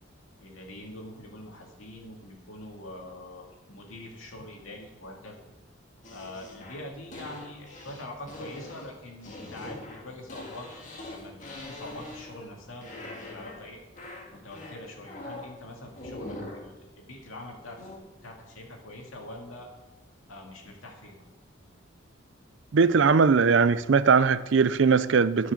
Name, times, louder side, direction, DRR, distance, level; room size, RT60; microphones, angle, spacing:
voice 1, 0.4-5.4 6.1-10.7 11.1-12.9 13.3-13.8 14.3-17.9 18.2-19.7 20.3-21.2, left 1 dB, 85° left, 2.5 m, -44 dB
sound 1, 6.0-12.5 12.8-13.7 14.0-15.5 15.9-16.7 17.8-18.0, left 2 dB, 35° left, 1.8 m, -42 dB
voice 2, 22.7-25.5, right 5 dB, 65° right, 0.5 m, -20 dB
13.5 x 6.2 x 6.5 m
head